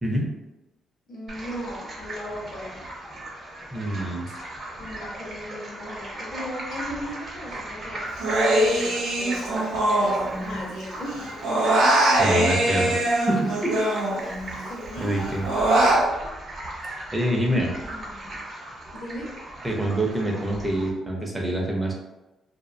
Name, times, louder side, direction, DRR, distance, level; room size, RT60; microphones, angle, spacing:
voice 1, 1.1-2.9 4.3-4.4 4.8-8.0 8.6-11.5 12.9-13.1 14.7-15.3 16.8-17.0 17.8-18.4 18.9-19.3, equal, 55° left, -6 dB, 0.7 m, -37 dB
sound 1, 1.3-20.9, right 1 dB, 50° right, 0.8 m, -38 dB
voice 2, 3.7-4.2 12.2-13.0 13.3-13.8 15.0-15.4 17.1-17.7 19.6-22.0, right 1 dB, 15° right, -1 dB, 0.6 m, -25 dB
Human voice, 8.2-10.8 11.1-14.6 14.9-16.0, right 1 dB, 90° right, 0.6 m, -22 dB
2.5 x 2.1 x 2.6 m, 1.0 s
cardioid pair, 90°, 0 cm